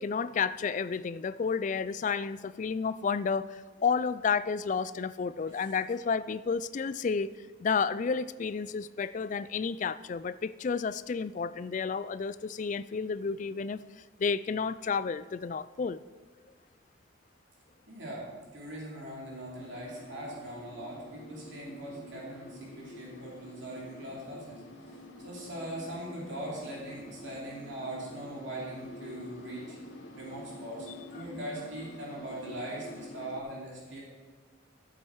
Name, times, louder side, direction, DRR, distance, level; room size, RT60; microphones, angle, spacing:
voice 1, 0.0-7.3 7.6-13.8 14.2-16.0, left 5 dB, 40° left, 15 dB, 0.3 m, -31 dB
voice 2, 17.9-25.0 25.2-29.8 30.2-34.0, right 1 dB, 65° right, -5 dB, 2.9 m, -41 dB
sound 1, 19.6-33.4, left 1 dB, 85° left, 1.6 m, -47 dB
14.0 x 7.5 x 4.7 m, 1.5 s
head